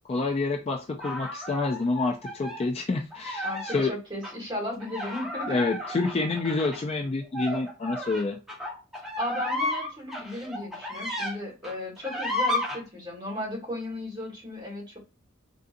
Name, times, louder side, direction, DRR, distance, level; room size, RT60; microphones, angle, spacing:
voice 1, 0.1-3.9 5.5-8.4, left 3 dB, 30° left, 0.3 m, -28 dB
sound 1, 1.0-2.6 3.1-3.9 4.2-4.3 4.8-11.3 11.6-12.8, left 1 dB, ahead, 1.2 m, -33 dB
voice 2, 3.4-5.6 9.2-15.0, left 1 dB, 20° right, 1.5 m, -35 dB
3.6 x 2.6 x 2.5 m
head